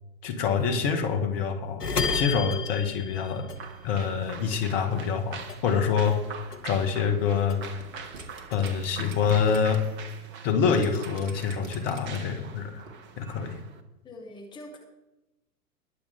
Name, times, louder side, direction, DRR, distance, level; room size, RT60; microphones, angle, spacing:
voice 1, 0.2-1.8 2.1-3.5 3.8-6.2 6.6-7.6 8.5-9.8 10.4-12.8 13.2-13.6, left 6 dB, 35° left, 5 dB, 1.8 m, -26 dB
sound 1, 1.8-4.3 4.5-6.2 6.5-7.9 8.3-9.4, left 4 dB, 75° left, 1.3 m, -33 dB
sound 2, 3.6-13.8, right 6 dB, 25° right, 1.0 m, -44 dB
sound 3, 7.7-9.8 10.2-10.3 10.7-12.4 12.8-12.9, right 3 dB, 55° right, 2.3 m, -47 dB
voice 2, 14.0-14.8, left 1 dB, 10° left, 1 dB, 1.4 m, -43 dB
21.0 x 7.2 x 3.7 m, 0.97 s
figure-of-eight pair, 110°, 47 cm